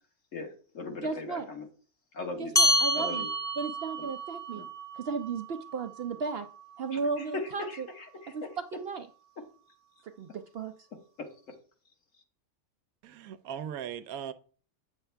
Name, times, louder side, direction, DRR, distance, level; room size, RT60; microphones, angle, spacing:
voice 1, 0.3-1.7 2.1-2.5 2.9-3.3 4.0-4.1 4.5-4.7 6.9-8.3 11.5-11.6, left 3 dB, 65° left, 1.7 m, -39 dB
voice 2, 1.0-1.5 2.4-3.3 3.6-4.6 4.9-6.5 6.8-7.9 8.3-8.4 8.7-9.1 10.2-10.7, right 4 dB, 60° right, 0.6 m, -34 dB
sound 1, 2.5-7.4, equal, 5° left, 0.8 m, -30 dB
voice 3, 13.0-14.3, right 9 dB, 90° right, 1.1 m, -38 dB
8.1 x 7.1 x 3.3 m
omnidirectional pair, 1.5 m